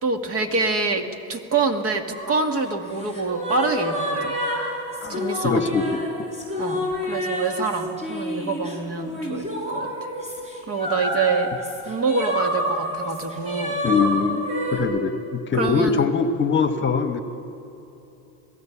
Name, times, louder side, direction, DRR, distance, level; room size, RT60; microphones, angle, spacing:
voice 1, 0.0-4.3 5.1-5.6 6.6-9.9 10.7-11.5 11.8-13.8 15.5-16.1, right 4 dB, 40° right, 5 dB, 2.2 m, -26 dB
sound 1, 2.1-14.8, equal, 20° right, 7.1 m, -29 dB
voice 2, 5.0-6.3 13.8-14.4 14.7-17.2, left 5 dB, 35° left, 7 dB, 1.5 m, -23 dB
27.0 x 18.0 x 7.3 m, 2.9 s
supercardioid pair, 110°, 35 cm